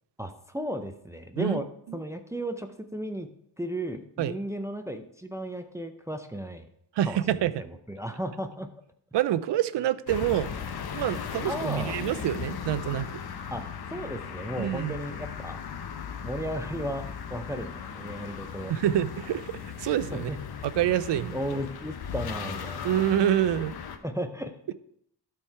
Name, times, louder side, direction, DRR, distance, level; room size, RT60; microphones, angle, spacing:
voice 1, 0.2-1.7 1.9-3.3 3.6-6.7 7.0-8.7 11.5-11.9 13.5-13.6 13.9-15.6 16.2-18.7 20.1-20.6 21.3-23.0 24.0-24.7, equal, 5° right, 6 dB, 0.5 m, -35 dB
voice 2, 7.0-7.6 9.1-10.5 10.9-13.1 14.6-14.9 18.7-19.5 19.8-20.3 20.6-21.4 22.8-23.7, right 11 dB, 80° right, 15 dB, 0.5 m, -26 dB
sound 1, 10.1-24.0, left 7 dB, 60° left, 0.9 m, -37 dB
12.0 x 4.6 x 4.6 m, 0.71 s
wide cardioid pair, 135°, 42 cm